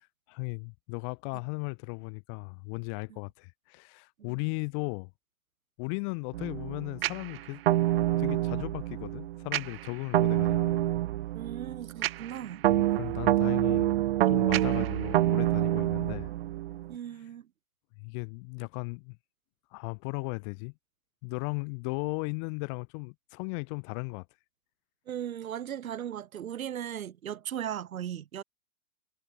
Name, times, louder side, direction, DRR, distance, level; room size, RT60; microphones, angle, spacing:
voice 1, 0.3-5.1 5.8-7.6 8.2-10.7 12.7-14.0 14.2-16.3 18.0-19.2 19.7-20.7 21.2-24.3, left 37 dB, 20° left, 0.7 m, -36 dB
sound 1, 6.3-16.9, right 15 dB, 45° right, 0.6 m, -27 dB
voice 2, 11.3-12.6 16.9-17.5 25.1-28.4, right 10 dB, 70° right, 4.1 m, -37 dB
hypercardioid pair, 155°, 42 cm